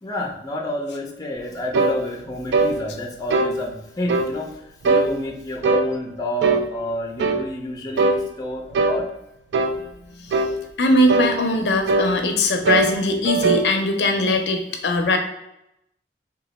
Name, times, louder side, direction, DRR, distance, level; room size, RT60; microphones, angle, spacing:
voice 1, 0.0-9.1, equal, 20° left, 0 dB, 0.5 m, -29 dB
sound 1, 1.7-2.0 2.5-2.8 3.3-3.5 4.1-4.3 4.8-5.1 5.6-5.9 6.4-6.7 7.2-7.4 8.0-8.2 8.7-9.0 9.5-9.8 10.3-10.6 11.1-11.3 11.9-12.1 12.7-12.9 13.2-13.7, right 3 dB, 70° right, 0.3 m, -19 dB
voice 2, 10.8-15.2, left 2 dB, 70° left, 5 dB, 0.5 m, -20 dB
3.1 x 2.3 x 4.0 m, 0.84 s
head